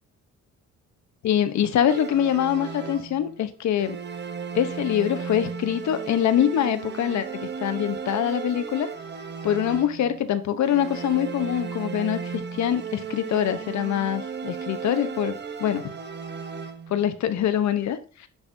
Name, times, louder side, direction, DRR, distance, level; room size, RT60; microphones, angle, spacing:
voice 1, 1.2-4.0 4.5-8.9 9.4-15.9 16.9-18.3, left 10 dB, 65° left, 11 dB, 0.9 m, -24 dB
sound 1, 1.9-3.4 3.8-10.2 10.6-17.1, right 6 dB, 35° right, 0.9 m, -35 dB
10.5 x 7.1 x 2.7 m, 0.38 s
cardioid pair, 90°, 30 cm